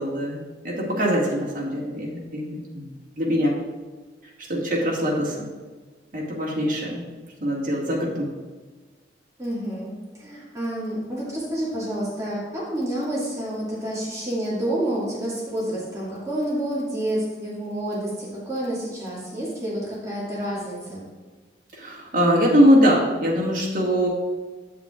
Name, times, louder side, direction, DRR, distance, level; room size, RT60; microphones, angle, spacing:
voice 1, 0.0-2.9 3.2-3.5 4.5-5.5 6.1-7.0 7.4-8.3 21.7-24.1, equal, 50° right, -4 dB, 1.9 m, -22 dB
voice 2, 9.4-21.0, right 1 dB, 20° right, -8 dB, 2.1 m, -29 dB
8.7 x 7.3 x 2.5 m, 1.4 s
head